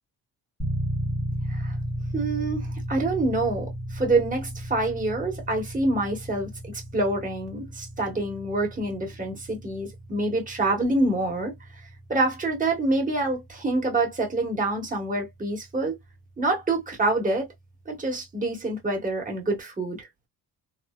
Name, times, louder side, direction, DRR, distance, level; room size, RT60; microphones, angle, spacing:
sound 1, 0.6-17.3, equal, ahead, 1.2 m, -35 dB
voice 1, 2.1-11.5 12.1-16.0 16.4-17.5 17.8-20.1, right 2 dB, 20° right, 1.5 m, -26 dB
3.1 x 2.1 x 2.3 m
cardioid pair, 100°, 39 cm